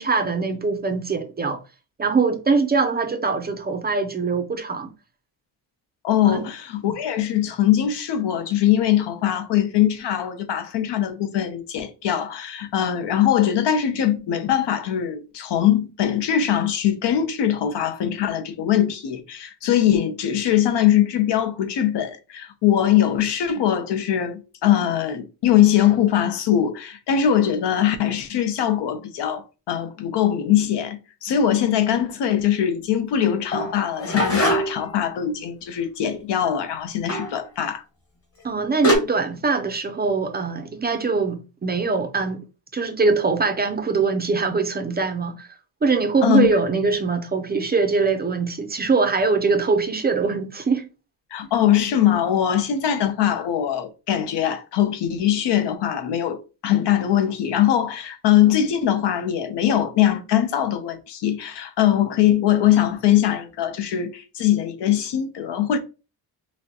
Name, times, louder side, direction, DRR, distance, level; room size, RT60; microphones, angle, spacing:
voice 1, 0.0-1.6 2.0-4.9 6.3-6.4 38.4-42.4 42.7-45.5 45.8-50.9, right 4 dB, 25° right, 0.4 m, -22 dB
voice 2, 6.0-37.8 46.2-46.6 51.3-65.8, left 10 dB, 80° left, 0.8 m, -21 dB
sound 1, 33.5-34.9 37.1-37.4 38.4-38.5 38.8-39.0, equal, 35° left, 1.3 m, -22 dB
5.8 x 2.1 x 2.8 m
cardioid pair, 140°, 41 cm